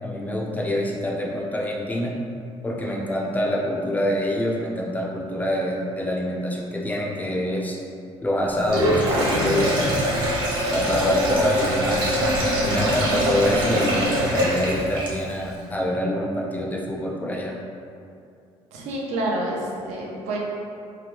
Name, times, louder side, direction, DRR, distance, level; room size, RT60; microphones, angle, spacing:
voice 1, 0.0-2.1 2.6-7.8 8.2-9.9 10.7-12.2 12.6-17.5, left 1 dB, 15° left, -2 dB, 0.3 m, -26 dB
Sink (filling or washing), 8.6-15.4, equal, 45° right, 0.9 m, -23 dB
voice 2, 10.9-11.5 18.7-20.4, right 1 dB, 85° right, -3 dB, 0.6 m, -29 dB
2.8 x 2.2 x 3.3 m, 2.5 s
cardioid pair, 145°, 11 cm